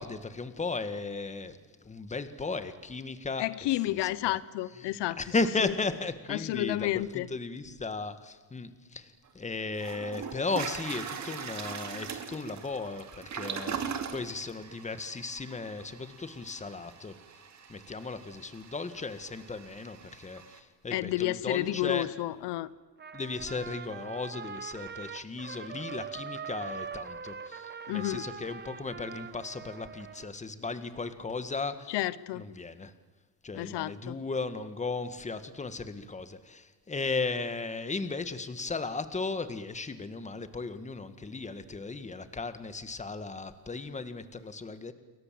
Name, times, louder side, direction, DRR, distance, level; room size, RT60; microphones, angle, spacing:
voice 1, 0.0-1.6 1.9-3.5 3.9-4.4 5.2-17.1 17.7-22.1 23.1-31.9 32.4-32.9 33.4-44.9, left 3 dB, 15° left, 10 dB, 1.8 m, -36 dB
voice 2, 3.4-5.3 5.6-5.7 6.3-7.3 20.9-22.7 27.9-28.3 31.9-32.4 33.5-34.2, left 16 dB, 80° left, 17 dB, 0.9 m, -31 dB
Toilet flush, 9.3-9.4 9.8-20.6, right 7 dB, 40° right, 2.6 m, -41 dB
Trumpet, 23.0-30.3, right 6 dB, 25° right, 1.2 m, -42 dB
29.5 x 22.5 x 7.7 m, 1.4 s
cardioid pair, 145°, 41 cm